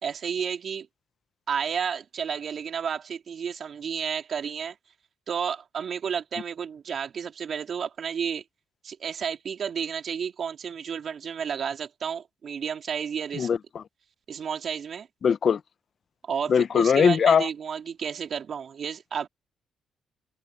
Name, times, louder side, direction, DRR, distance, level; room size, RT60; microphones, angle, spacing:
voice 1, 0.0-0.9 1.5-4.7 5.3-8.4 8.8-13.5 14.3-15.1 16.2-19.3, right 7 dB, 55° right, 3.4 m, -31 dB
voice 2, 13.3-13.8 15.2-15.6 16.5-17.5, left 7 dB, 50° left, 0.6 m, -21 dB
cardioid pair, 90°, 0 cm